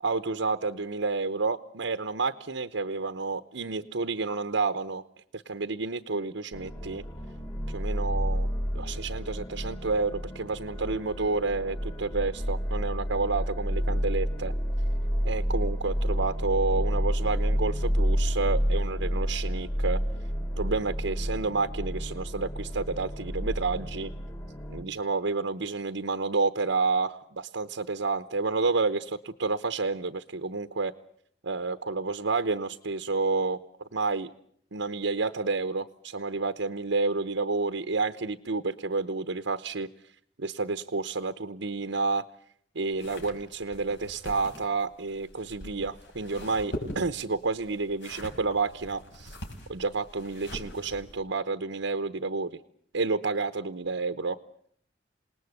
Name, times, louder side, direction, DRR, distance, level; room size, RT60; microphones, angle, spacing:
voice 1, 0.0-5.0 5.3-7.0 7.7-8.5 8.7-14.5 15.2-20.0 20.6-24.1 24.7-30.9 31.4-33.6 33.9-34.3 34.7-39.9 40.4-42.2 42.7-49.4 49.7-52.6 52.9-54.4, right 3 dB, 75° right, 9 dB, 0.9 m, -30 dB
sound 1, 6.5-24.8, equal, 25° left, 2.6 m, -30 dB
sound 2, 42.9-51.2, equal, 70° left, 5.9 m, -43 dB
27.5 x 19.5 x 8.1 m, 0.65 s
head